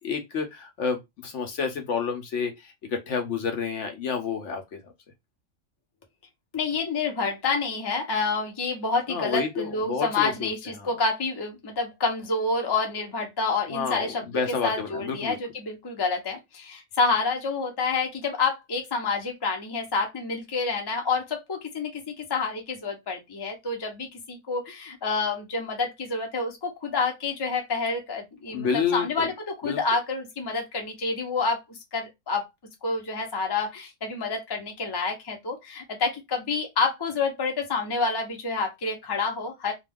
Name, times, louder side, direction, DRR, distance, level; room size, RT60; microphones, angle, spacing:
voice 1, 0.0-4.9 9.1-10.5 10.8-10.9 13.7-15.4 28.5-29.3 29.6-29.8, left 6 dB, 65° left, 0.9 m, -29 dB
voice 2, 6.5-32.5 32.8-39.7, left 4 dB, 30° left, 0.5 m, -28 dB
2.4 x 2.2 x 3.3 m
omnidirectional pair, 1.5 m